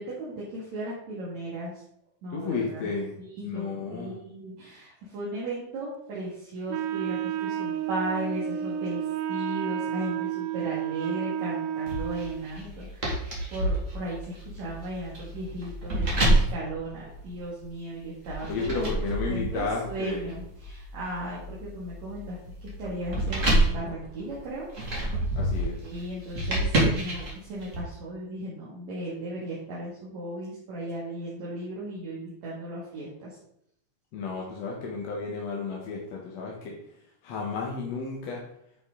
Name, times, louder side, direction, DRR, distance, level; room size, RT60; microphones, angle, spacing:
voice 1, 0.0-1.8 2.2-2.9 3.2-18.9 19.3-24.7 25.8-33.4, right 1 dB, 60° right, -7 dB, 3.3 m, -36 dB
voice 2, 2.3-3.2 3.4-4.2 18.5-20.4 25.3-25.8 34.1-36.7 37.2-38.4, left 4 dB, 60° left, -1 dB, 2.3 m, -32 dB
Wind instrument woodwind instrument, 6.7-12.6, right 9 dB, 85° right, 2.1 m, -31 dB
sound 1, 11.9-17.7 18.3-27.8, right 1 dB, 25° right, 2.2 m, -29 dB
9.9 x 6.0 x 3.9 m, 0.72 s
omnidirectional pair, 3.6 m